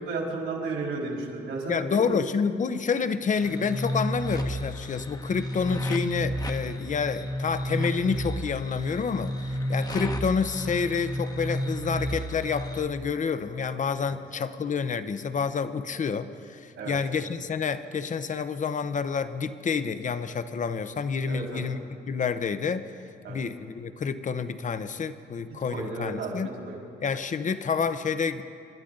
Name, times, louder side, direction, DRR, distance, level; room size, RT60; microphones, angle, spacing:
voice 1, 0.0-2.2 14.0-14.1 16.8-16.9 21.3-21.6 23.2-23.4 25.7-26.8, right 3 dB, 75° right, -2 dB, 4.2 m, -33 dB
voice 2, 1.7-21.8 22.1-22.9 23.3-26.5 27.0-28.4, left 5 dB, 40° left, 11 dB, 0.8 m, -28 dB
sound 1, 3.4-12.9, equal, 20° left, 1.0 m, -32 dB
27.0 x 11.5 x 3.9 m, 2.4 s
cardioid pair, 90°, 20 cm